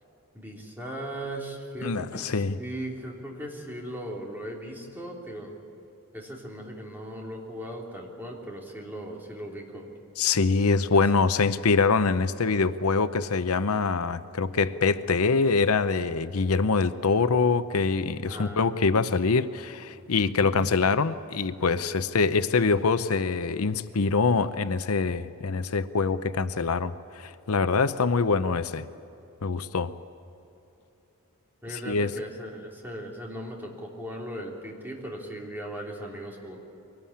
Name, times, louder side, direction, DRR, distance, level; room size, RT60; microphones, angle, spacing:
voice 1, 0.3-5.6 6.1-9.9 18.2-18.6 20.2-20.6 31.6-36.6, right 1 dB, 10° right, -2 dB, 3.4 m, -38 dB
voice 2, 1.8-2.6 10.2-28.9 29.4-29.9 31.9-32.1, left 4 dB, 80° left, 12 dB, 0.7 m, -24 dB
23.0 x 18.5 x 8.7 m, 3.0 s
head